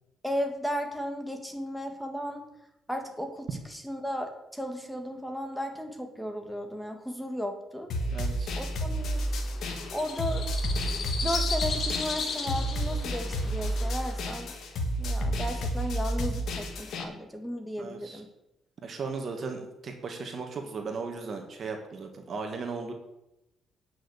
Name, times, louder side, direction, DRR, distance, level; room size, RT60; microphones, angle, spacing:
voice 1, 0.2-2.4 2.9-3.5 3.8-7.9 8.6-9.2 9.9-10.5 11.2-14.5 15.0-18.3, equal, ahead, 4 dB, 2.3 m, -35 dB
sound 1, 7.9-17.0, right 1 dB, 70° left, 2.1 m, -31 dB
voice 2, 8.1-8.5 17.8-18.2 18.8-22.9, right 4 dB, 50° right, 3 dB, 2.0 m, -36 dB
sound 2, 9.0-14.2, left 5 dB, 55° left, 2.1 m, -35 dB
9.5 x 6.4 x 8.2 m, 0.88 s
cardioid pair, 90°, 0 cm